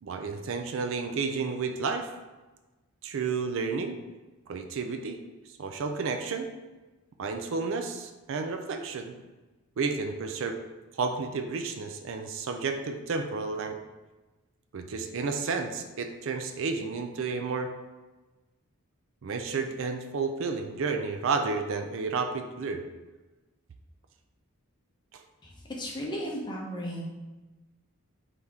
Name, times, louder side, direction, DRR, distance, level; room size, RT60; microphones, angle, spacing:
voice 1, 0.0-2.1 3.0-4.0 4.5-5.2 5.6-6.5 7.2-9.2 9.8-10.6 11.0-13.8 14.7-17.7 19.2-22.8 25.1-25.2, right 4 dB, 60° right, 6 dB, 0.4 m, -31 dB
voice 2, 25.8-27.0, equal, 20° left, -2 dB, 0.8 m, -34 dB
4.2 x 3.4 x 3.6 m, 1.2 s
head